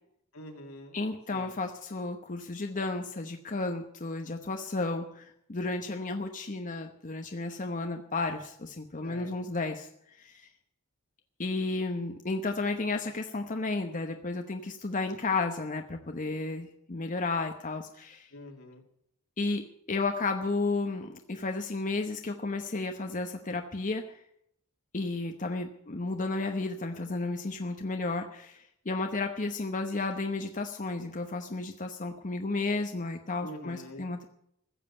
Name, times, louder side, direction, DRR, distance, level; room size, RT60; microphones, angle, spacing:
voice 1, 0.3-1.0 1.3-1.5 9.0-9.3 18.3-18.8 33.4-34.1, left 1 dB, 75° left, 2 dB, 2.8 m, -44 dB
voice 2, 0.9-9.9 10.2-10.5 11.4-18.3 19.4-24.2 24.9-34.2, left 3 dB, 35° left, 5 dB, 1.0 m, -33 dB
15.0 x 7.5 x 9.9 m, 0.72 s
head